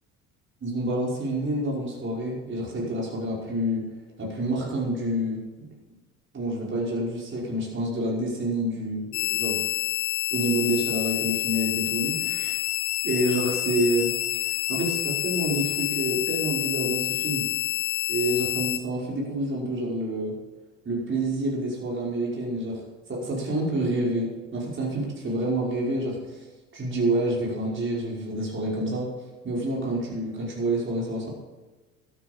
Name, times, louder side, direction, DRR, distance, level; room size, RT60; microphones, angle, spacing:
voice 1, 0.6-3.8 4.2-5.7 6.3-9.6 10.3-12.5 13.0-14.1 14.7-17.5 18.1-20.4 20.9-22.8 23.1-26.4 26.7-29.1 29.4-31.3, right 1 dB, 30° right, -4 dB, 5.4 m, -28 dB
sound 1, 9.1-18.8, left 16 dB, 65° left, 1.1 m, -28 dB
12.5 x 11.5 x 5.4 m, 1.2 s
hypercardioid pair, 65°, 39 cm